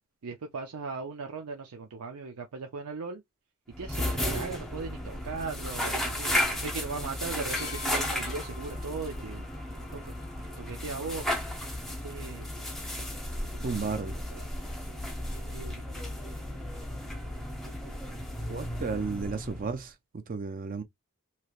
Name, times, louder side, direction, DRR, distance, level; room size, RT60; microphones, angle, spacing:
voice 1, 0.2-3.2 3.8-9.5 9.9-10.2 10.6-11.5 12.0-12.6 13.5-14.0 14.4-14.6 15.5-16.1, right 4 dB, 85° right, 0.6 m, -39 dB
sound 1, 3.7-19.9, left 1 dB, ahead, 0.8 m, -34 dB
sound 2, 7.5-11.3 12.3-12.5, left 5 dB, 45° left, 0.4 m, -48 dB
voice 2, 13.6-14.1 18.5-20.8, right 4 dB, 40° right, 0.4 m, -33 dB
3.2 x 2.8 x 2.4 m
head